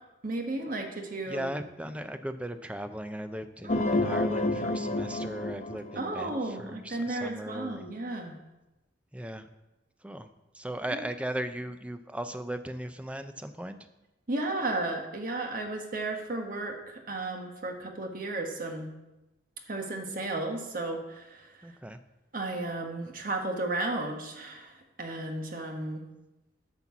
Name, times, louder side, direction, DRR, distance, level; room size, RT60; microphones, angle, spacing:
voice 1, 0.2-1.5 3.6-3.9 5.9-8.4 10.9-11.0 14.3-18.9 19.7-21.7 22.3-26.0, right 2 dB, 50° right, 3 dB, 1.4 m, -34 dB
voice 2, 1.3-7.9 9.1-9.5 10.0-10.3 10.5-13.8 21.6-22.0, right 1 dB, 5° right, 9 dB, 0.5 m, -37 dB
sound 1, 3.7-6.5, left 2 dB, 40° left, 0.7 m, -29 dB
11.0 x 4.4 x 7.2 m, 0.99 s
head